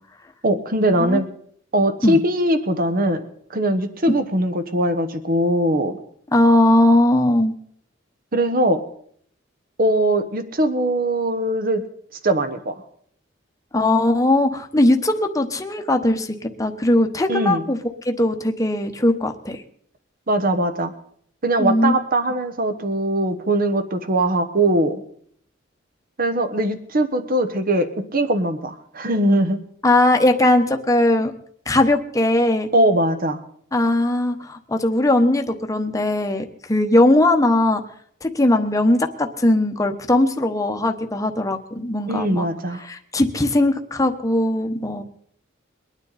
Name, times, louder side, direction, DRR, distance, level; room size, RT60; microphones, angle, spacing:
voice 1, 0.4-1.2 1.7-6.0 8.3-8.8 9.8-11.8 12.2-12.7 17.3-17.6 20.3-20.9 21.4-25.0 26.2-29.6 32.7-33.4 42.1-42.8, right 1 dB, 45° right, 10 dB, 1.1 m, -21 dB
voice 2, 6.3-7.5 13.7-17.8 18.0-19.6 21.6-21.9 29.8-31.3 31.7-32.7 33.7-37.8 38.2-42.5 42.9-45.0, left 1 dB, 15° left, 5 dB, 1.0 m, -19 dB
23.0 x 9.6 x 4.1 m, 0.62 s
head